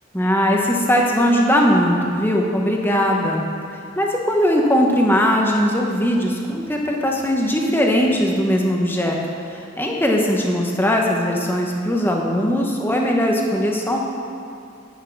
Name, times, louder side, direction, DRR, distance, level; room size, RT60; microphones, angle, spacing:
voice 1, 0.1-3.4 3.9-14.0, equal, 10° left, 0 dB, 1.0 m, -19 dB
9.5 x 8.6 x 6.0 m, 2.4 s
head